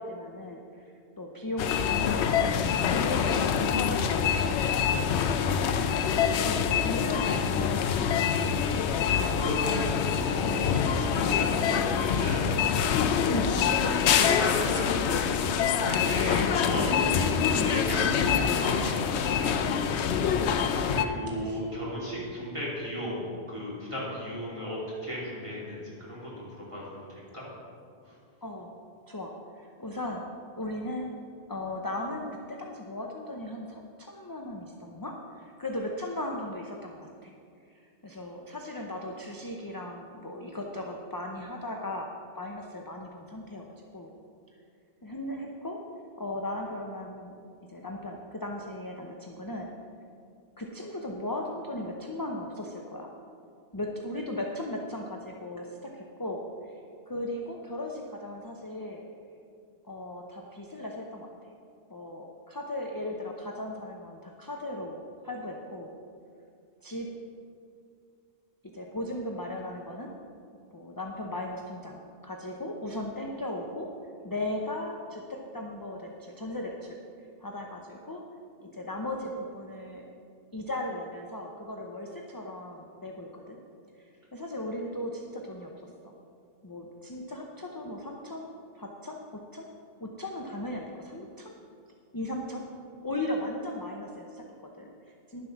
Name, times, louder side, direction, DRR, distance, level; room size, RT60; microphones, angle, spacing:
voice 1, 0.0-5.5 6.3-8.4 13.3-13.5 17.5-17.7 21.4-21.6 28.4-28.7 29.1-30.3 30.6-31.2 31.5-37.3 37.7-43.6 43.9-44.1 45.0-45.8 46.2-47.3 47.7-49.7 50.6-53.1 53.7-56.7 57.1-59.0 59.8-61.5 61.9-65.0 65.2-65.9 66.8-67.1 68.7-70.1 70.7-73.9 74.2-77.0 77.4-78.2 78.6-80.0 80.5-83.6 84.0-85.7 86.0-86.1 86.6-89.7 90.0-91.5 92.1-92.7 93.0-95.5, left 1 dB, 20° left, 0 dB, 0.7 m, -37 dB
sound 1, 1.6-21.0, left 7 dB, 85° left, 0.9 m, -25 dB
voice 2, 9.0-13.3 14.0-27.4, equal, 30° right, -7 dB, 3.4 m, -35 dB
11.0 x 7.6 x 5.8 m, 2.3 s
omnidirectional pair, 1.1 m